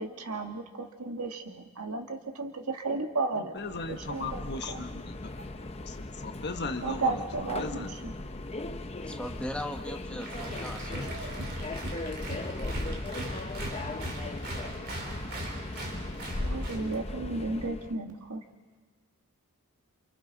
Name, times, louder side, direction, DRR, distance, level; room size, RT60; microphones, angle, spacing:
voice 1, 0.0-3.5 3.9-4.4 4.7-4.8 6.8-8.1 16.4-18.4, right 3 dB, 85° right, 4 dB, 1.8 m, -33 dB
voice 2, 3.4-5.3 5.8-7.9, left 3 dB, 50° left, 6 dB, 1.3 m, -38 dB
Subway metro underground, 3.6-17.9, left 2 dB, 30° left, 0.8 m, -38 dB
voice 3, 9.0-11.3, left 1 dB, 5° left, 2 dB, 1.6 m, -39 dB
Applause, 10.2-16.9, right 1 dB, 45° right, 4.1 m, -39 dB
29.0 x 28.0 x 4.0 m, 1.4 s
head